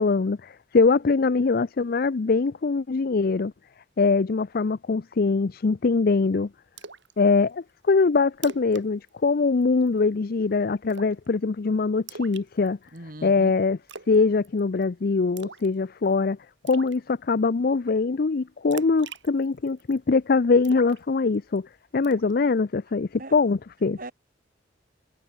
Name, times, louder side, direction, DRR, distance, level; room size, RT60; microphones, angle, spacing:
voice 1, 0.0-3.5 4.0-6.5 7.2-12.8 13.2-13.8 14.1-16.4 16.6-21.7 21.9-24.0, left 4 dB, 55° left, 0.5 m, -23 dB
Splash splatter, 6.8-7.1 7.5-7.6 8.0-8.1 8.3-8.8 9.1-9.3 9.6-10.0 10.9-11.3 12.1-13.0 13.9-14.2 14.4-14.8 15.4-15.7 16.1-16.2 16.7-17.0 18.7-20.0 20.6-21.6 22.0-22.3, right 5 dB, 85° right, 2.9 m, -42 dB
voice 2, 12.9-13.6 23.2-23.4 24.0-24.1, right 1 dB, 50° right, 4.1 m, -39 dB
head